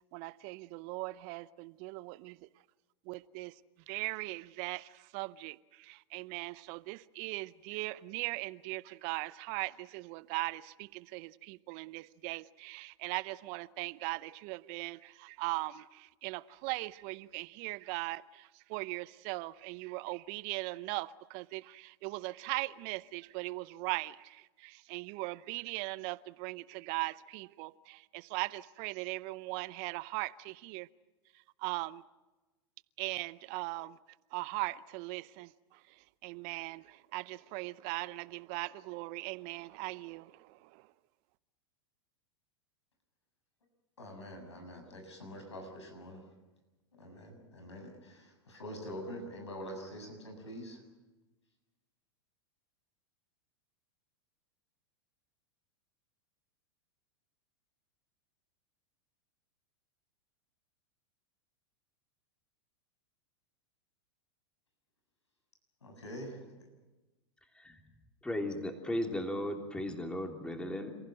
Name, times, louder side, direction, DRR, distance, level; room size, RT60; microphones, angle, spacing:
voice 1, 0.1-2.5 3.1-3.6 3.9-30.9 31.3-32.0 33.0-34.0 34.3-40.9, right 22 dB, 50° right, 0.7 m, -39 dB
voice 2, 44.0-46.2 47.0-50.8 65.8-66.7, equal, 90° left, 7.1 m, -45 dB
voice 3, 68.2-71.0, left 1 dB, 5° left, 3.2 m, -36 dB
28.5 x 15.5 x 9.1 m
hypercardioid pair, 100°, 14 cm